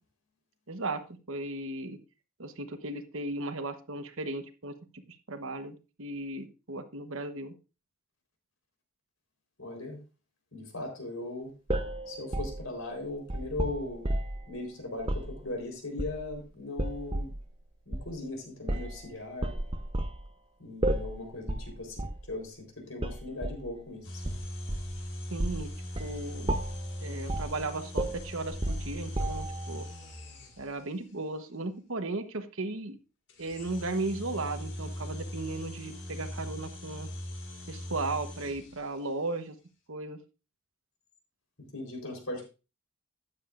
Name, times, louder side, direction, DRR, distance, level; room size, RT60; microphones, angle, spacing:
voice 1, 0.7-1.0 1.3-2.0 2.4-5.0 5.3-7.5 25.3-25.7 26.0-26.6 27.0-29.9 30.6-33.0 33.4-37.1 37.7-39.6 39.9-40.2, right 2 dB, 70° right, 8 dB, 1.1 m, -36 dB
voice 2, 9.6-10.0 10.5-11.5 12.1-14.0 14.5-17.3 17.9-19.5 20.6-24.2 41.7-42.5, left 2 dB, 75° left, 3 dB, 4.0 m, -38 dB
sound 1, 11.7-14.5 15.0-15.3 16.0-16.4 16.8-17.4 17.9-18.1 18.7-19.0 19.4-20.2 20.8-21.2 21.5-21.7 22.0-22.2 23.0-23.6 24.2-25.0 25.4-25.7 26.0-26.2 26.5-26.9 27.3-27.6 28.0-29.6, right 1 dB, 25° right, 0.7 m, -32 dB
sound 2, 24.0-31.0 33.3-39.1, left 1 dB, 55° left, 2.2 m, -40 dB
12.5 x 9.5 x 2.5 m, 0.31 s
head